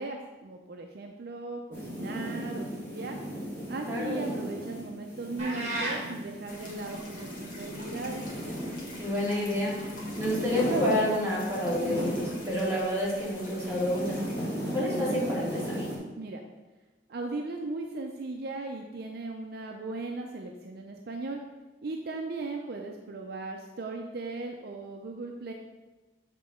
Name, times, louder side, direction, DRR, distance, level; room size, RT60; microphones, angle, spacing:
voice 1, 0.0-3.2 3.7-8.2 16.2-16.4 17.1-21.4 21.8-25.5, right 3 dB, 60° right, 2 dB, 0.5 m, -37 dB
sound 1, 1.7-12.8 13.1-16.0, equal, 15° left, 2.1 m, -36 dB
voice 2, 3.9-4.4 8.9-9.8 10.2-14.2 14.7-15.9, left 1 dB, 15° right, -7 dB, 2.1 m, -29 dB
sound 2, 5.4-6.0, right 2 dB, 40° right, 1.7 m, -32 dB
sound 3, 6.5-14.3, left 2 dB, 50° left, 1.6 m, -47 dB
7.4 x 3.7 x 4.4 m, 1.2 s
head